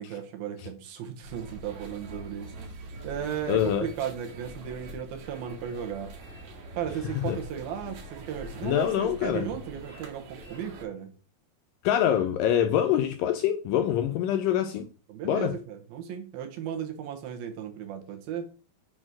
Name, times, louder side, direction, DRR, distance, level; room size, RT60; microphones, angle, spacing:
voice 1, 0.0-6.1 6.8-11.1 15.1-18.5, right 8 dB, 75° right, 3.0 m, -35 dB
sound 1, 1.2-10.8, right 1 dB, 55° right, 2.5 m, -44 dB
voice 2, 3.5-3.9 7.2-7.4 8.6-9.5 11.8-14.9 15.2-15.6, left 10 dB, 80° left, 2.0 m, -25 dB
6.8 x 4.3 x 6.1 m
omnidirectional pair, 4.4 m